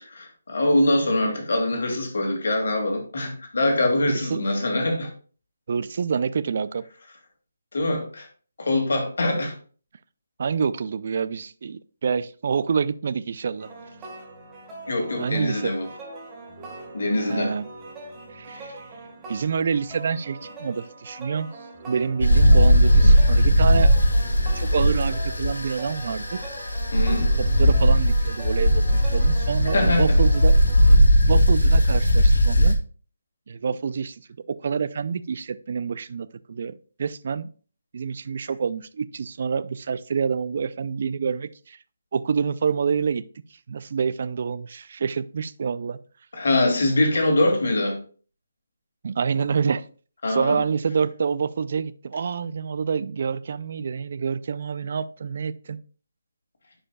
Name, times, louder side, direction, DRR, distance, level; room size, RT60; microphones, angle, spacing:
voice 1, 0.0-5.1 7.7-8.3 8.6-9.5 14.9-15.9 16.9-17.5 18.5-18.7 26.9-27.3 29.7-30.2 46.3-48.0 50.2-50.6, left 1 dB, 65° left, 2.3 m, -23 dB
voice 2, 4.1-4.4 5.7-6.8 10.4-13.7 15.2-15.7 17.2-17.6 18.3-18.7 19.3-21.5 21.8-23.9 24.6-26.4 27.6-28.8 29.1-30.5 31.2-32.8 33.5-34.2 34.6-37.5 37.9-41.8 42.1-43.2 43.7-46.0 49.0-49.8 50.3-55.8, right 6 dB, 50° right, 0.4 m, -27 dB
sound 1, 13.6-30.9, right 2 dB, 15° right, 1.6 m, -41 dB
sound 2, 22.2-32.7, equal, 85° left, 1.7 m, -18 dB
9.8 x 5.0 x 2.3 m
figure-of-eight pair, 155°, 0 cm